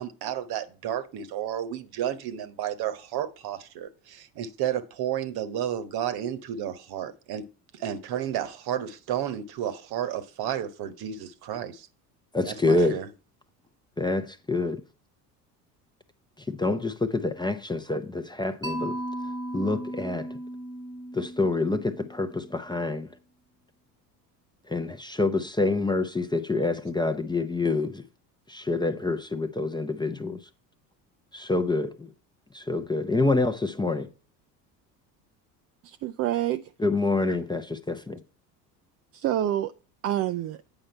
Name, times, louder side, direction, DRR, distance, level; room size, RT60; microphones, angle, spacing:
voice 1, 0.0-7.5 7.7-11.9 12.4-13.1, right 10 dB, 50° right, 1.1 m, -32 dB
voice 2, 12.3-13.0 14.0-14.8 16.5-19.0 19.5-20.3 21.1-23.1 24.7-28.0 28.5-30.4 31.3-32.1 32.5-34.1 36.8-38.2, left 3 dB, 10° left, 0.7 m, -27 dB
Mallet percussion, 18.6-22.6, right 1 dB, 10° right, 1.3 m, -36 dB
voice 3, 35.8-36.7 39.1-39.7 40.0-40.6, right 12 dB, 35° right, 0.4 m, -27 dB
8.9 x 5.5 x 4.4 m
hypercardioid pair, 70°, 48 cm